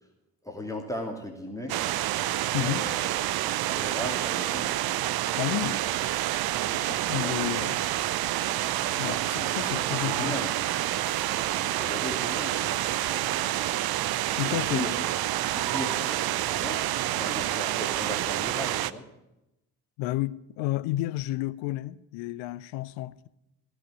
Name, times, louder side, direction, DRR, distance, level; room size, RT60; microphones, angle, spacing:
voice 1, 0.4-1.8 2.5-3.1 3.4-4.7 6.6-7.7 9.0-10.9 11.4-13.7 14.4-14.9 15.5-16.9 17.1-19.0, left 1 dB, 5° left, 2.5 m, -38 dB
sound 1, 1.7-18.9, right 14 dB, 50° right, 0.6 m, -28 dB
voice 2, 2.5-2.9 5.3-5.8 6.9-7.8 9.0-10.4 14.3-14.9 20.0-23.3, left 16 dB, 65° left, 0.7 m, -31 dB
sound 2, 11.0-13.1, right 4 dB, 90° right, 1.2 m, -53 dB
16.0 x 5.5 x 9.7 m
figure-of-eight pair, 45°, 47 cm